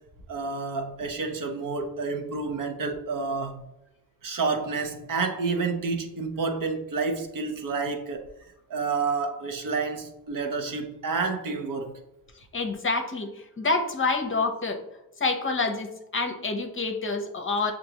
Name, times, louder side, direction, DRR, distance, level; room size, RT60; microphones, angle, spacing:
voice 1, 0.3-3.6 4.2-8.3 8.7-11.9, right 4 dB, 55° right, 0.8 m, -29 dB
voice 2, 12.5-13.3 13.6-14.8 15.2-17.7, left 3 dB, 30° left, 0.7 m, -27 dB
6.6 x 2.6 x 2.8 m
cardioid pair, 85°, 39 cm